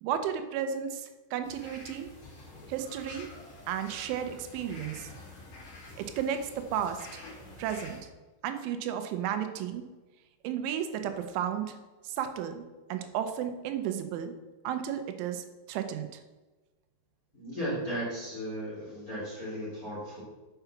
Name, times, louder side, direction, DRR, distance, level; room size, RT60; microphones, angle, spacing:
voice 1, 0.0-2.1 2.7-3.3 3.7-5.1 6.0-7.2 7.6-8.1 8.4-9.9 10.4-11.8 12.0-14.3 14.6-16.2, right 9 dB, 85° right, 8 dB, 3.2 m, -33 dB
sound 1, 1.4-8.0, left 2 dB, 50° left, 4.2 m, -48 dB
voice 2, 17.3-20.2, equal, 25° left, -7 dB, 2.2 m, -35 dB
7.9 x 5.8 x 5.7 m, 1.2 s
omnidirectional pair, 5.4 m